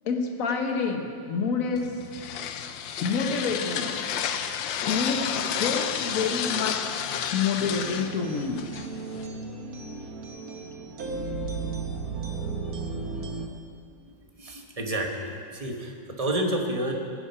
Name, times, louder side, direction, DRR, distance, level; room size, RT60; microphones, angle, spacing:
voice 1, 0.0-1.9 2.2-2.4 3.0-4.0 4.9-8.6, left 5 dB, 50° left, 4 dB, 1.4 m, -28 dB
sound 1, 1.8-9.3, left 8 dB, 80° left, 1.4 m, -31 dB
sound 2, 7.6-13.5, right 4 dB, 55° right, 1.4 m, -35 dB
voice 2, 14.4-16.9, right 1 dB, 20° right, 2 dB, 1.1 m, -29 dB
16.0 x 9.9 x 5.6 m, 2.3 s
omnidirectional pair, 2.1 m